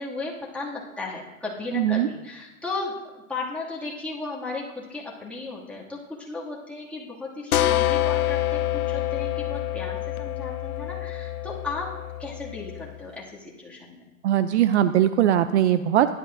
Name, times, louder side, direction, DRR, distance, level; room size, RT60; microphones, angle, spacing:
voice 1, 0.0-11.9 12.2-14.1, left 3 dB, 5° left, -6 dB, 2.2 m, -35 dB
voice 2, 1.7-2.1 14.2-16.1, right 11 dB, 55° right, 12 dB, 0.5 m, -20 dB
sound 1, 7.5-13.0, left 13 dB, 85° left, 0.6 m, -27 dB
16.0 x 11.0 x 2.6 m, 1.0 s
hypercardioid pair, 130°, 43 cm